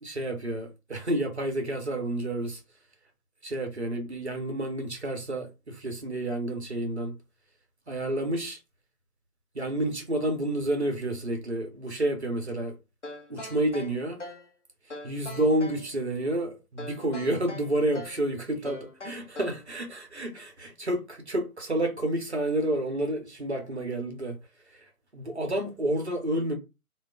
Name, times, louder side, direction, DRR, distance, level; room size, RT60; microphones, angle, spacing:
voice 1, 0.0-2.6 3.4-7.1 7.9-8.6 9.5-12.7 13.3-14.2 15.0-24.4 24.7-24.8 25.1-26.6, right 1 dB, 45° right, 0.7 m, -29 dB
sound 1, 13.0-14.5 14.9-15.9 16.8-18.2 18.6-19.7, left 2 dB, 50° left, 0.7 m, -42 dB
2.2 x 2.1 x 3.5 m
figure-of-eight pair, 165°, 45 cm